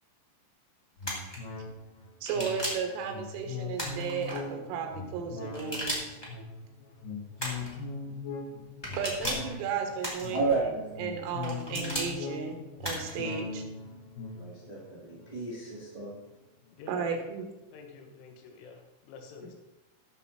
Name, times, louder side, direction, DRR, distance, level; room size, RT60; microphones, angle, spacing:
sound 1, 1.0-16.7 17.1-17.2, left 4 dB, 60° left, 2.6 m, -41 dB
sound 2, 1.0-1.4 2.2-2.9 3.7-4.4 5.5-6.3 7.4-7.8 8.8-9.5 10.0-10.6 11.4-12.1 12.8-13.2, equal, 30° left, 0.5 m, -35 dB
voice 1, 2.2-6.0 9.0-13.6 16.9-17.5, right 6 dB, 80° right, 3 dB, 3.8 m, -34 dB
voice 2, 10.3-10.9 14.3-16.1, right 3 dB, 45° right, -6 dB, 0.4 m, -32 dB
voice 3, 16.8-17.2 17.7-19.5, left 5 dB, 75° left, 3 dB, 3.8 m, -48 dB
14.0 x 6.7 x 4.3 m, 1.0 s
omnidirectional pair, 5.9 m